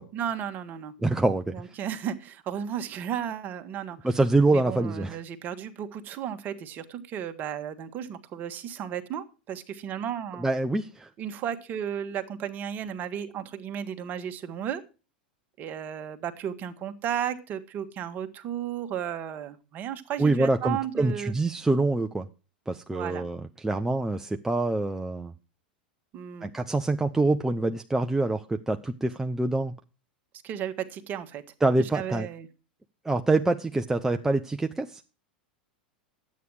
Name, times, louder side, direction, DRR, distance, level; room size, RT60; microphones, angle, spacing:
voice 1, 0.1-0.9 1.5-4.0 4.5-10.5 11.2-14.8 15.6-21.3 22.9-23.2 26.1-26.5 30.4-31.4 31.8-32.5, right 9 dB, 35° right, 9 dB, 1.3 m, -34 dB
voice 2, 1.0-1.5 4.0-5.2 10.4-11.1 20.2-22.3 22.7-25.3 26.4-29.7 31.6-32.3 33.0-35.0, right 2 dB, 5° right, 5 dB, 0.6 m, -25 dB
11.0 x 8.5 x 4.8 m, 0.33 s
figure-of-eight pair, 90°, 5 cm